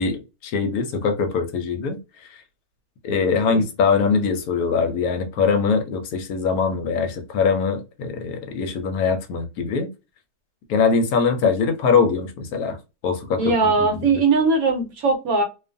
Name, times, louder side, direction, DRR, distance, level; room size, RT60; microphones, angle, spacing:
voice 1, 0.0-2.0 3.0-9.9 10.7-12.8 13.0-14.1, left 5 dB, 70° left, 1.0 m, -22 dB
voice 2, 13.4-15.4, right 4 dB, 70° right, 1.1 m, -19 dB
2.5 x 2.3 x 2.5 m
omnidirectional pair, 1.7 m